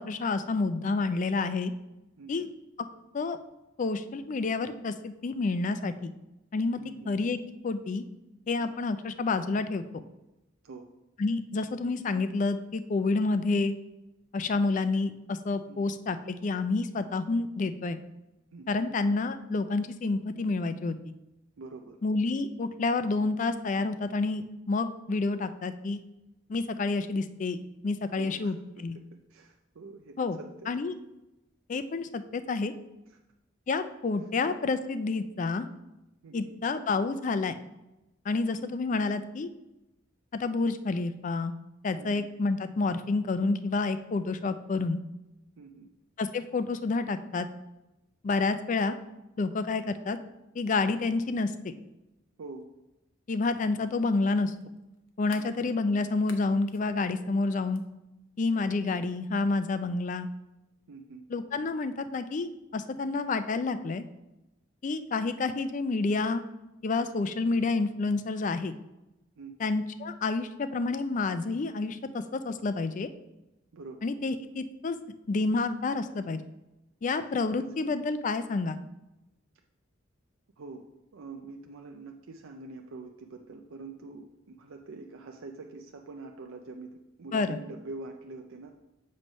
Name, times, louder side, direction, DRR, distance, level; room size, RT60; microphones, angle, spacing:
voice 1, 0.0-1.7 2.3-2.5 3.1-3.4 3.8-6.1 6.5-6.8 7.1-7.4 7.6-8.0 8.5-10.0 11.2-13.7 14.3-18.0 18.7-21.1 22.0-26.0 26.5-28.6 28.8-29.0 30.2-30.4 30.7-30.9 31.7-32.7 33.7-35.7 36.3-37.6 38.3-39.5 40.4-41.5 41.8-45.0 46.2-47.5 48.2-49.0 49.4-50.2 50.6-51.7 53.3-54.5 55.2-57.8 58.4-60.3 61.3-64.0 64.8-66.5 66.8-68.7 69.6-73.1 74.0-75.0 75.3-76.4 77.0-78.8 87.3-87.6, left 3 dB, 40° left, 11 dB, 0.4 m, -29 dB
voice 2, 2.2-2.5 6.8-7.1 8.6-8.9 10.6-10.9 15.7-15.8 18.5-18.8 21.6-22.0 28.2-28.5 28.9-29.0 29.3-30.9 33.1-33.2 36.2-36.6 38.5-38.6 42.0-42.2 45.6-45.9 52.4-52.7 55.4-55.5 60.9-61.2 69.4-69.5 73.7-74.0 77.4-77.7 80.6-80.8 81.1-88.7, right 3 dB, 80° right, 3 dB, 0.5 m, -45 dB
sound 1, 52.6-52.7 54.5-55.6 56.1-56.8 57.7-57.8, left 5 dB, 70° left, 0.7 m, -50 dB
7.6 x 3.2 x 5.3 m, 0.96 s
head